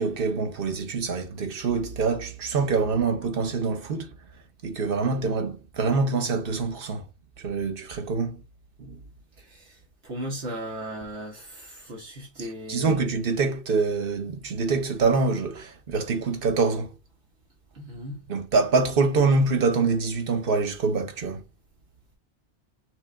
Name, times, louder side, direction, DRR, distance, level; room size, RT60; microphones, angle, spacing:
voice 1, 0.0-4.1 4.6-7.0 7.4-8.4 8.8-9.0 12.4-16.9 18.3-21.4, right 4 dB, 55° right, 1.0 m, -25 dB
voice 2, 9.4-13.1 17.7-18.2, equal, 70° right, 1.4 m, -37 dB
5.9 x 2.2 x 3.6 m
omnidirectional pair, 1.2 m